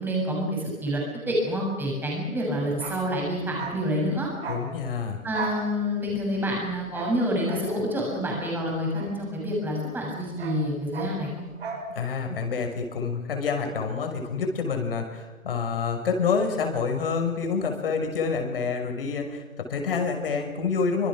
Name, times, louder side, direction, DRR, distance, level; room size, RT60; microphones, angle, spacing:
voice 1, 0.0-4.3 5.2-11.5, equal, 5° right, -1 dB, 6.5 m, -28 dB
Bark, 2.7-9.7 10.0-11.9 12.2-12.3, right 4 dB, 45° right, 7.0 m, -38 dB
voice 2, 4.5-5.2 11.9-21.1, left 5 dB, 40° left, 5 dB, 6.1 m, -27 dB
27.0 x 26.0 x 6.3 m, 1.2 s
figure-of-eight pair, 145°, 41 cm